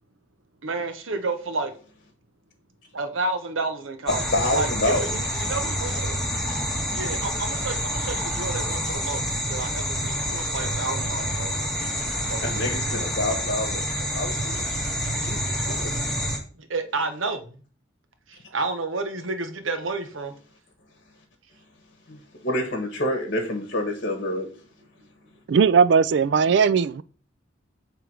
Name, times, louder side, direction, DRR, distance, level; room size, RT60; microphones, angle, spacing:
voice 1, 0.6-1.7 2.9-4.2 4.5-6.2 6.9-9.2 9.5-11.6 12.2-12.6 16.7-17.4 18.5-20.3, right 3 dB, 80° right, 1.0 m, -30 dB
voice 2, 4.1-5.2 12.4-13.8 14.1-14.7 15.2-15.9 22.1-24.5, left 1 dB, 50° left, 1.2 m, -27 dB
sound 1, 4.1-16.4, equal, ahead, 1.4 m, -28 dB
voice 3, 25.5-27.0, right 6 dB, 60° right, 0.3 m, -18 dB
7.9 x 3.4 x 4.7 m
head